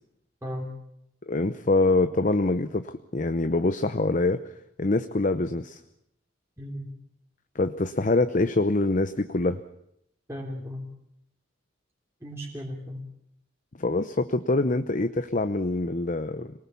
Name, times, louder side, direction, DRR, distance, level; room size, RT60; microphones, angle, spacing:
voice 1, 0.4-0.7 6.6-6.9 10.3-10.9 12.2-13.0, equal, 15° right, -2 dB, 3.4 m, -36 dB
voice 2, 1.2-4.4 4.8-5.8 7.5-9.6 13.8-16.5, left 2 dB, 40° left, 10 dB, 0.8 m, -25 dB
26.0 x 19.5 x 7.1 m, 0.76 s
head